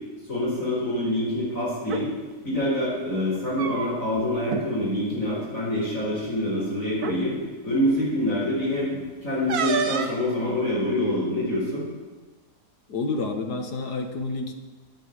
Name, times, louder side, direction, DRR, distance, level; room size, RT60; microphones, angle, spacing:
voice 1, 0.3-2.1 2.4-7.4 7.6-11.9, left 1 dB, 55° left, -6 dB, 4.9 m, -26 dB
sound 1, 1.8-2.0 3.3-4.2 4.5-4.6 5.0-5.3 6.2-6.3 6.9-7.2 9.5-10.2, right 6 dB, 70° right, 1.5 m, -29 dB
voice 2, 12.9-14.5, left 3 dB, 85° left, 4 dB, 2.0 m, -29 dB
10.0 x 9.3 x 9.4 m, 1.3 s
omnidirectional pair, 1.7 m